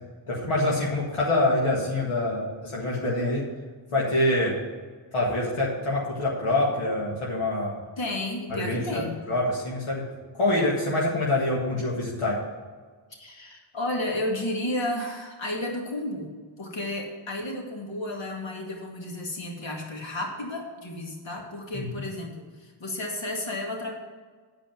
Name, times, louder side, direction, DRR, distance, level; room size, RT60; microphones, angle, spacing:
voice 1, 0.3-3.4 3.9-4.6 5.1-7.8 8.5-10.0 10.3-12.4 21.7-21.9, left 1 dB, 80° left, -4 dB, 1.9 m, -25 dB
voice 2, 8.0-9.2 13.2-16.3 16.6-23.9, left 1 dB, 65° left, 0 dB, 2.2 m, -32 dB
9.9 x 5.2 x 7.1 m, 1.5 s
cardioid pair, 45°, 49 cm